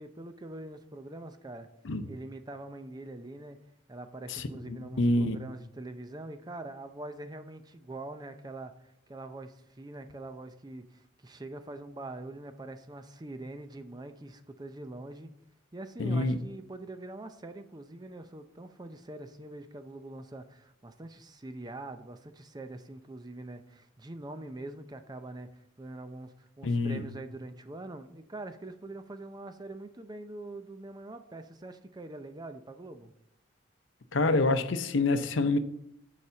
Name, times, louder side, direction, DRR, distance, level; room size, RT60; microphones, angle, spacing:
voice 1, 0.0-1.7 2.1-3.6 3.9-15.3 15.7-33.1, right 2 dB, 20° right, 0.5 m, -44 dB
voice 2, 4.3-5.4 16.0-16.4 26.6-27.0 34.1-35.6, left 2 dB, 80° left, 0.6 m, -27 dB
6.9 x 4.9 x 6.8 m
head